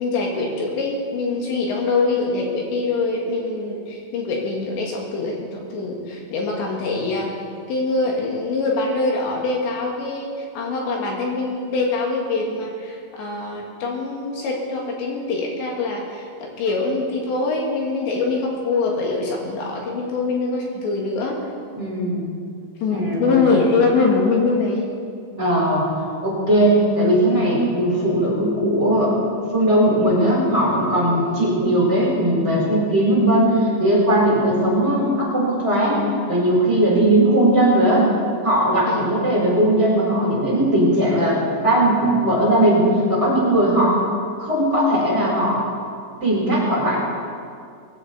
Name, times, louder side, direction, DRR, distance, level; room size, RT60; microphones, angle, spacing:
voice 1, 0.0-7.3 7.7-21.4 22.8-24.9 31.1-31.5 38.9-39.1, left 3 dB, 70° left, -1 dB, 3.8 m, -23 dB
voice 2, 21.7-22.3 22.9-23.6 25.3-25.9 26.2-29.2 29.5-38.1 38.4-42.8 43.1-44.0 44.4-45.6 46.2-47.0, right 1 dB, 15° right, -6 dB, 4.6 m, -18 dB
22.0 x 15.5 x 4.2 m, 2.3 s
omnidirectional pair, 5.5 m